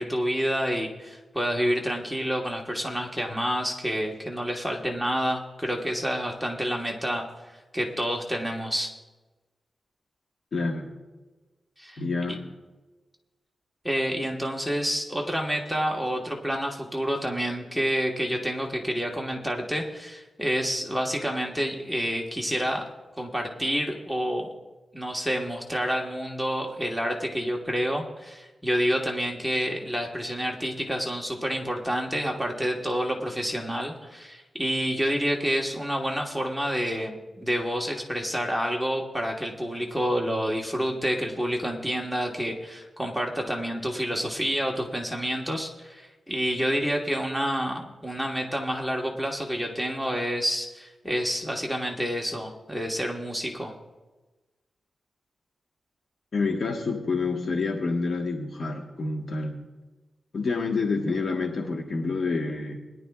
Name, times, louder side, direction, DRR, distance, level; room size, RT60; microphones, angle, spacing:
voice 1, 0.0-9.0 11.8-12.0 13.8-22.8 23.2-24.5 24.9-53.7, equal, ahead, 0 dB, 1.3 m, -28 dB
voice 2, 10.5-10.9 12.0-12.4 56.3-59.6 60.3-62.8, left 3 dB, 60° left, 1 dB, 1.3 m, -28 dB
21.5 x 11.0 x 2.4 m, 1.2 s
wide cardioid pair, 105°, 0 cm